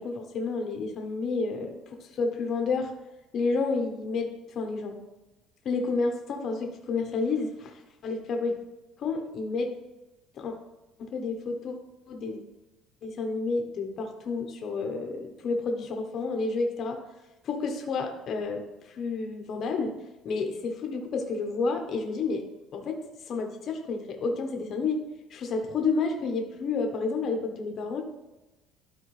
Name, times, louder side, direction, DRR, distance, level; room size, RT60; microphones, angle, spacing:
voice 1, 0.0-2.9 3.3-5.0 5.6-8.6 9.0-9.7 10.4-10.5 11.0-11.8 12.1-12.4 13.0-17.0 17.4-19.9 20.2-22.4 22.7-23.0 23.3-25.0 25.3-28.0, left 4 dB, 40° left, 3 dB, 0.8 m, -30 dB
12.0 x 4.5 x 3.2 m, 1.0 s
cardioid pair, 165°, 0 cm